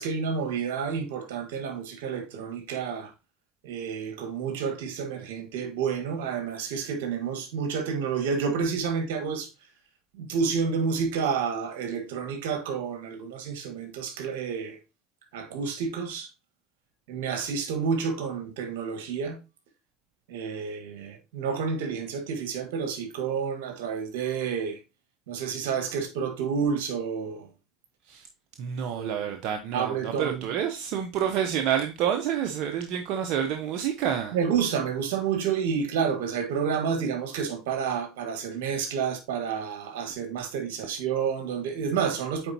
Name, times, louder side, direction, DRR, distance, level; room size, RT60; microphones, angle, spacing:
voice 1, 0.0-3.1 3.6-9.5 10.2-14.8 15.3-16.3 17.1-19.4 20.3-24.8 25.3-27.5 28.8-29.3 29.7-30.4 34.3-42.5, right 6 dB, 85° right, 1.5 m, -29 dB
voice 2, 28.6-34.4, right 9 dB, 65° right, 0.8 m, -28 dB
8.8 x 4.0 x 2.7 m
supercardioid pair, 95°, 0 cm